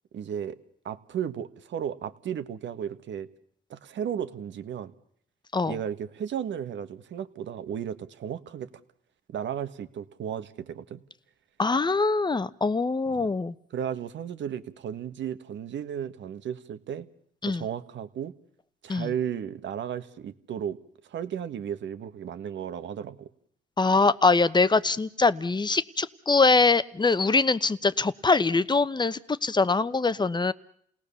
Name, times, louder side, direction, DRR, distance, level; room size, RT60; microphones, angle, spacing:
voice 1, 0.1-0.6 0.8-3.3 3.7-4.9 5.6-8.7 9.3-11.0 13.1-13.3 13.7-17.1 17.4-18.3 18.8-20.8 21.0-23.3, right 9 dB, 70° right, 11 dB, 1.6 m, -34 dB
voice 2, 11.6-13.5 17.4-17.6 18.9-19.1 23.8-30.5, left 3 dB, 20° left, 15 dB, 0.9 m, -23 dB
29.5 x 18.5 x 7.0 m, 0.65 s
cardioid pair, 90°, 20 cm